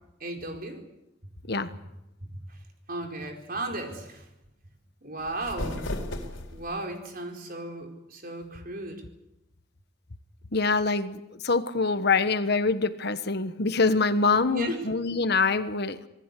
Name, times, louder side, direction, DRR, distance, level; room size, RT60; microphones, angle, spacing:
voice 1, 0.2-0.8 2.5-2.6 2.9-4.3 5.0-5.9 6.5-9.0 14.5-14.9, right 1 dB, 45° right, 3 dB, 4.5 m, -35 dB
sound 1, 5.2-6.8, left 1 dB, 75° left, 4.0 m, -35 dB
voice 2, 10.5-16.0, left 4 dB, 55° left, 11 dB, 1.3 m, -25 dB
27.0 x 19.5 x 8.4 m, 0.92 s
head